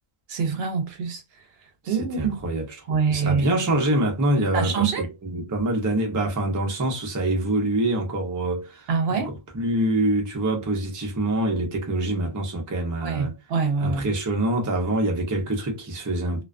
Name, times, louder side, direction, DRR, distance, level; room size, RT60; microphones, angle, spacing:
voice 1, 0.3-1.2 1.9-2.5 2.9-3.5 4.5-5.0 8.9-9.3 13.0-14.1, right 5 dB, 75° right, 0.8 m, -25 dB
voice 2, 1.8-13.3 13.8-16.4, right 1 dB, 25° right, 0.5 m, -25 dB
2.3 x 2.2 x 2.3 m
omnidirectional pair, 1.1 m